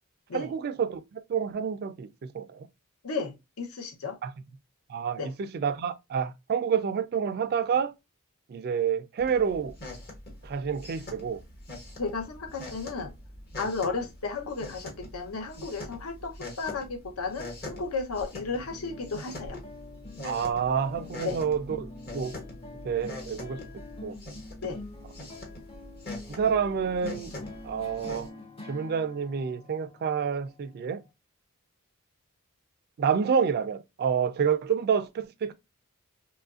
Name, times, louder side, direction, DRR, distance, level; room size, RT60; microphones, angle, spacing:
voice 1, 0.3-2.7 4.2-4.3 4.9-7.9 8.5-9.7 10.4-11.4 20.2-22.3 22.8-23.6 24.0-24.1 26.3-27.3 27.6-28.3 28.7-31.0 33.0-35.5, right 7 dB, 45° right, 0.3 m, -28 dB
voice 2, 3.0-4.2 5.2-5.3 12.0-13.1 13.6-19.6 21.2-21.4 24.6-24.8, left 4 dB, 75° left, 0.7 m, -34 dB
sound 1, 9.2-28.3, left 2 dB, 45° left, 1.1 m, -43 dB
sound 2, 18.3-31.1, left 2 dB, 25° left, 0.6 m, -46 dB
3.0 x 2.4 x 2.3 m
head